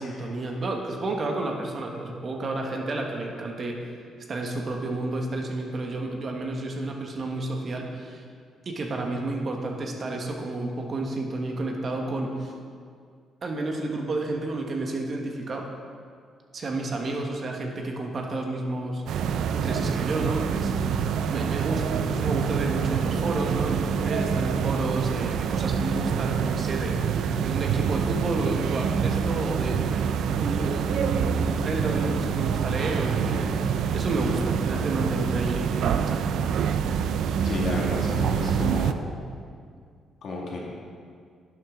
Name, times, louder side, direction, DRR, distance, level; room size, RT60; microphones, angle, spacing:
voice 1, 0.0-3.8 4.3-8.2 8.6-12.5 13.4-15.7 16.5-30.1 30.3-36.2, right 2 dB, 45° right, 1 dB, 1.4 m, -31 dB
sound 1, 19.1-38.9, right 7 dB, 75° right, 0.4 m, -26 dB
voice 2, 37.4-39.1 40.2-40.6, left 2 dB, 65° left, -2 dB, 2.2 m, -32 dB
11.0 x 7.7 x 3.8 m, 2.1 s
cardioid pair, 90°, 0 cm